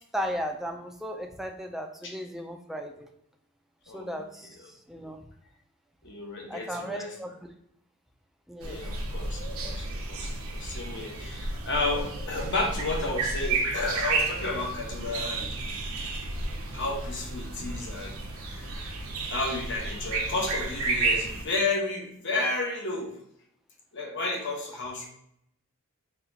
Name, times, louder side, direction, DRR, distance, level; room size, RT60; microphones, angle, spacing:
voice 1, 0.1-3.1 3.9-4.6 4.9-5.2 6.5-7.3 8.5-8.8, equal, ahead, 3 dB, 0.4 m, -35 dB
voice 2, 3.9-4.7 6.0-7.4 8.6-15.5 16.7-19.0 19.3-23.1 23.9-25.1, left 2 dB, 55° left, 0 dB, 1.0 m, -32 dB
sound 1, 8.6-21.4, right 3 dB, 65° right, 0.7 m, -32 dB
4.1 x 2.4 x 3.9 m, 0.73 s
head